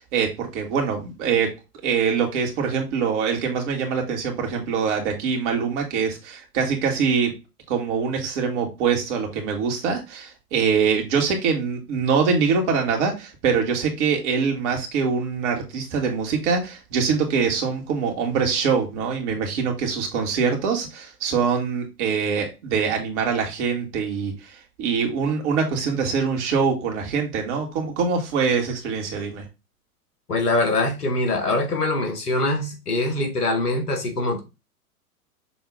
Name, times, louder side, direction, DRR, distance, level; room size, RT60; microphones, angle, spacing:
voice 1, 0.0-1.5 1.8-7.3 7.7-29.4, right 6 dB, 50° right, 2.5 m, -24 dB
voice 2, 30.3-34.4, left 2 dB, 75° left, 2.0 m, -23 dB
7.1 x 3.6 x 3.8 m
figure-of-eight pair, 100°, 46 cm